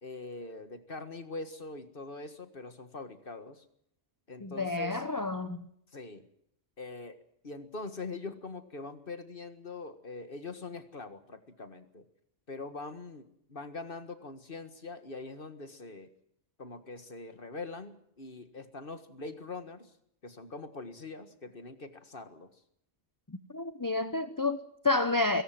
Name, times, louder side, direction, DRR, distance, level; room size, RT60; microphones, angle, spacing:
voice 1, 0.0-3.6 4.3-5.0 5.9-6.3 6.8-7.2 7.4-12.0 12.5-16.1 16.6-19.9 20.2-22.6, left 3 dB, 50° left, 1.9 m, -43 dB
voice 2, 4.4-5.6 23.3-25.4, left 3 dB, 20° left, 0.9 m, -30 dB
22.5 x 18.0 x 7.6 m
omnidirectional pair, 1.2 m